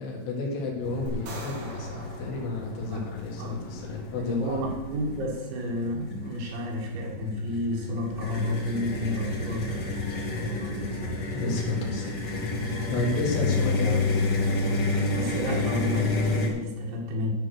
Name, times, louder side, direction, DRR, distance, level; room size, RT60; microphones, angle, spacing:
voice 1, 0.0-4.7 11.3-12.2 12.9-14.2, left 3 dB, 70° left, 0 dB, 3.9 m, -31 dB
sound 1, 0.8-16.5, left 3 dB, 85° left, 0.9 m, -30 dB
sound 2, 1.1-3.4, right 2 dB, 40° right, 2.7 m, -43 dB
voice 2, 4.2-11.2 13.9-14.2 15.1-17.3, left 1 dB, 85° right, -1 dB, 4.5 m, -32 dB
10.5 x 7.6 x 6.4 m, 1.1 s
omnidirectional pair, 5.2 m